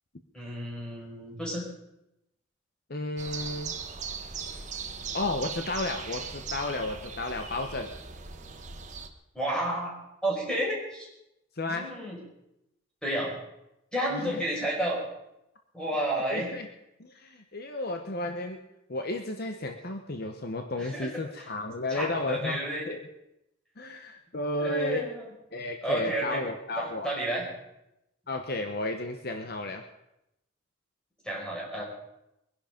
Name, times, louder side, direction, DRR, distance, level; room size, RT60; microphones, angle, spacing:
voice 1, 0.3-1.6 9.3-9.9 10.2-11.1 11.6-12.2 13.0-13.4 13.9-15.0 15.7-16.5 20.8-21.1 21.9-22.8 24.6-25.3 25.8-26.4 26.8-27.5 31.2-31.8, right 1 dB, 5° left, -3 dB, 5.4 m, -31 dB
voice 2, 2.9-3.7 5.1-7.9 11.5-11.9 14.1-14.4 16.3-16.7 17.0-18.6 18.9-22.6 22.9-23.0 23.8-25.1 25.5-27.1 28.3-29.8, left 2 dB, 50° left, 5 dB, 1.0 m, -33 dB
sound 1, 3.2-9.1, right 5 dB, 35° right, 1.3 m, -39 dB
22.5 x 11.0 x 5.2 m, 0.87 s
head